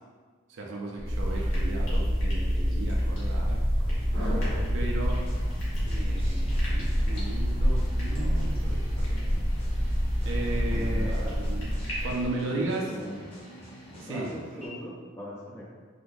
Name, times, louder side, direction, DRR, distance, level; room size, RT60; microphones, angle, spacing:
voice 1, 0.5-3.6 4.7-5.2 5.8-9.4 9.8-10.0 10.2-11.7 12.0-12.8 13.9-14.3, right 2 dB, 65° right, -2 dB, 0.4 m, -35 dB
sound 1, 1.0-12.3, equal, 80° left, 1.2 m, -27 dB
sound 2, 1.0-7.3, equal, 85° right, 1.4 m, -36 dB
sound 3, 5.0-14.7, equal, 30° left, 0.9 m, -47 dB
voice 2, 10.7-11.4 12.5-13.3 14.1-15.6, equal, 15° left, -7 dB, 0.5 m, -40 dB
3.6 x 2.6 x 2.6 m, 1.5 s
head